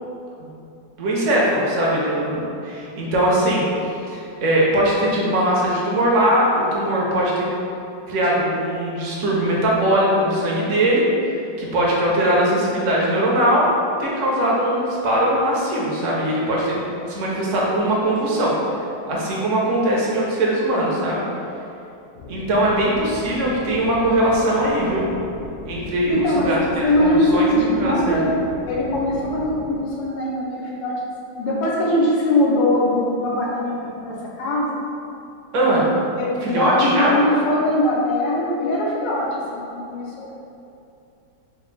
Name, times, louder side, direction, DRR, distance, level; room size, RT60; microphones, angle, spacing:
voice 1, 1.0-3.7 4.1-7.4 8.1-11.0 11.3-13.7 14.0-16.8 17.1-18.5 19.1-21.2 22.3-25.1 25.6-28.2 35.5-35.9 36.4-37.2, right 1 dB, 60° right, -4 dB, 0.8 m, -20 dB
sound 1, 22.1-29.8, left 1 dB, 60° left, 0.9 m, -37 dB
voice 2, 26.1-26.5 26.8-28.4 28.7-30.9 31.4-33.8 34.0-34.7 36.2-40.3, left 1 dB, 90° left, -5 dB, 1.5 m, -21 dB
5.0 x 2.4 x 3.2 m, 2.7 s
omnidirectional pair, 1.9 m